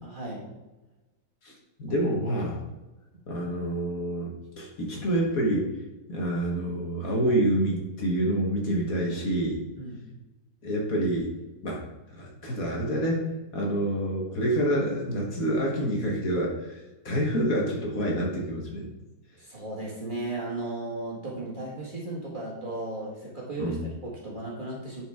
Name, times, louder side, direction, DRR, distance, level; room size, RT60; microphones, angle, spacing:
voice 1, 0.0-0.4 9.8-10.1 19.4-25.0, right 2 dB, 30° right, -5 dB, 1.7 m, -35 dB
voice 2, 1.4-2.6 3.3-5.7 6.1-9.6 10.6-11.3 11.6-11.8 12.1-18.9 23.6-23.8, right 1 dB, 55° left, -2 dB, 1.7 m, -27 dB
10.0 x 4.7 x 3.5 m, 1.1 s
omnidirectional pair, 1.9 m